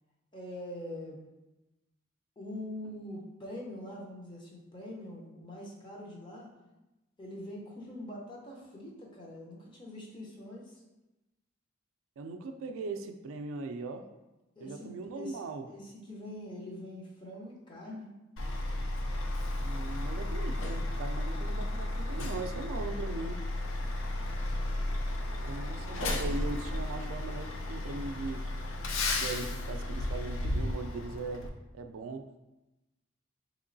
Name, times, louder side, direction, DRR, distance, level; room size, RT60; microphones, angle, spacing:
voice 1, 0.3-1.2 2.4-6.5 7.2-10.7 14.6-14.9 15.1-15.4 15.7-18.1, left 1 dB, 25° left, -3 dB, 0.6 m, -43 dB
voice 2, 12.2-14.1 14.6-15.7 19.6-23.4 24.8-24.9 25.4-28.4 28.9-31.5 31.7-32.4, right 3 dB, 85° right, 6 dB, 0.3 m, -40 dB
Truck, 18.4-31.5, left 1 dB, 85° left, 0.4 m, -33 dB
3.6 x 3.0 x 2.6 m, 1.0 s
head